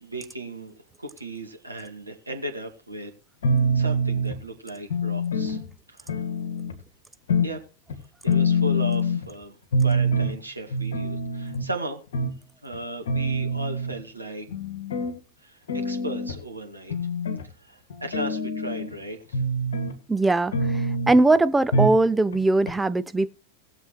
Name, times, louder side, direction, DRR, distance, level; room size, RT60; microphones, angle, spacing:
voice 1, 0.0-3.1 3.7-5.6 5.9-6.2 7.4-7.6 8.2-12.0 12.6-14.5 15.4-15.6 15.8-17.0 17.6-19.4, right 1 dB, 80° right, 2.2 m, -36 dB
sound 1, 3.4-4.4 4.9-5.7 6.1-6.7 7.3-7.6 7.9-8.0 8.3-9.2 9.7-10.3 10.7-11.7 12.1-12.3 12.7-12.8 13.1-14.0 14.5-15.2 15.7-16.4 16.9-17.4 17.9-18.9 19.3-19.9 20.5-21.2 21.7-22.1 22.3-22.4 22.7-22.8, equal, 60° left, 1.9 m, -25 dB
voice 2, 20.1-23.3, right 2 dB, 10° right, 0.6 m, -21 dB
19.0 x 7.3 x 3.3 m
figure-of-eight pair, 90°, 0 cm